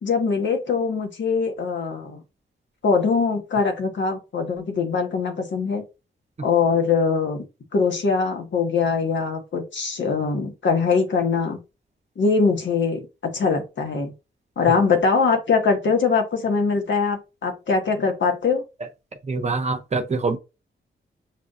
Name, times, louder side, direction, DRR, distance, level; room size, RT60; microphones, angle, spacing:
voice 1, 0.0-2.2 2.8-5.8 6.4-7.5 7.7-11.6 12.2-14.1 14.6-18.6, left 5 dB, 65° left, 1.4 m, -22 dB
voice 2, 19.3-20.4, right 3 dB, 35° right, 0.8 m, -24 dB
7.3 x 2.6 x 2.4 m
wide cardioid pair, 105°, 20 cm